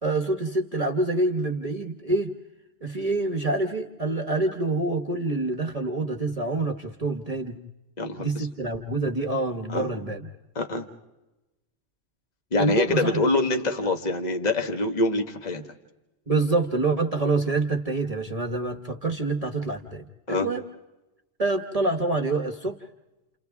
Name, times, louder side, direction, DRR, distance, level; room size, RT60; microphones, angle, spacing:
voice 1, 0.0-2.3 2.8-7.6 8.2-10.3 12.6-13.2 16.3-20.6 21.4-22.8, right 2 dB, 30° right, 2 dB, 1.1 m, -26 dB
voice 2, 8.0-8.5 9.7-9.9 10.5-10.9 12.5-15.6 20.3-20.5, left 2 dB, 35° left, 5 dB, 1.5 m, -25 dB
29.5 x 29.0 x 3.5 m, 1.0 s
omnidirectional pair, 1.3 m